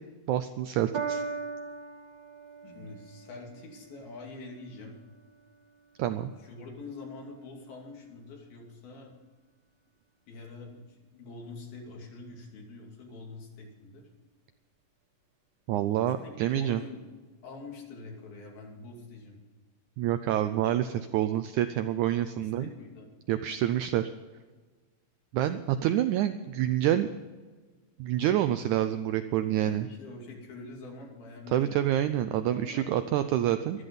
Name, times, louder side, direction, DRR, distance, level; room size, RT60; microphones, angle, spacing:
voice 1, 0.3-1.2 6.0-6.3 15.7-16.8 20.0-22.7 23.3-24.1 25.3-27.1 28.0-29.9 31.5-33.8, right 12 dB, 90° right, 10 dB, 1.7 m, -27 dB
Piano, 0.9-7.5 8.3-8.4, right 5 dB, 45° right, 1.7 m, -41 dB
voice 2, 2.6-5.0 6.4-9.2 10.3-14.0 16.2-17.1 17.4-19.4 22.2-23.6 29.6-31.9 32.5-33.8, left 3 dB, 90° left, 0 dB, 4.6 m, -45 dB
13.5 x 13.0 x 5.4 m, 1.3 s
omnidirectional pair, 4.1 m